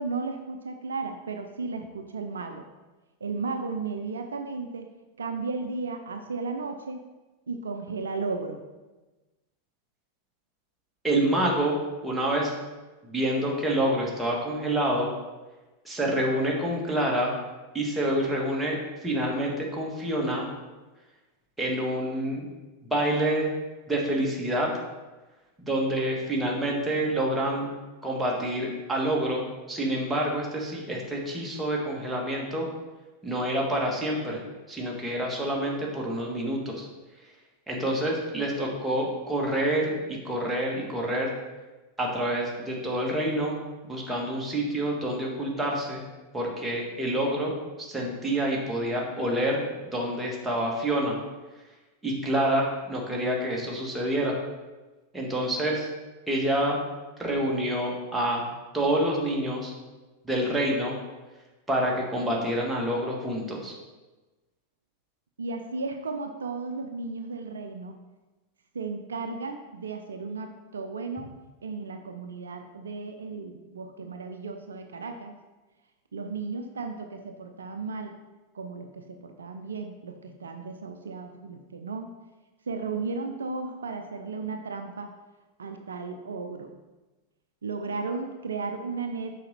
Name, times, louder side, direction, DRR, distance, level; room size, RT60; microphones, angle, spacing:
voice 1, 0.0-2.6 3.2-4.9 5.2-7.0 7.5-8.6 65.4-68.0 68.7-71.3 71.6-75.3 76.1-78.2 78.5-82.1 82.7-85.1 85.6-86.7 87.6-89.3, right 4 dB, 70° right, 5 dB, 0.5 m, -34 dB
voice 2, 11.0-11.8 12.0-12.6 13.0-15.1 15.9-17.3 17.7-20.5 21.6-22.4 22.9-23.5 23.9-24.7 25.7-27.7 28.0-32.7 33.2-34.4 34.7-36.9 37.7-41.3 42.0-43.6 43.9-46.0 46.3-47.5 47.8-49.6 49.9-51.2 52.0-54.4 55.1-55.9 56.3-56.8 57.2-58.5 58.7-59.7 60.2-60.9 61.7-63.7, right 1 dB, 5° right, -3 dB, 1.6 m, -27 dB
6.5 x 5.0 x 4.2 m, 1.2 s
figure-of-eight pair, 90°, 0 cm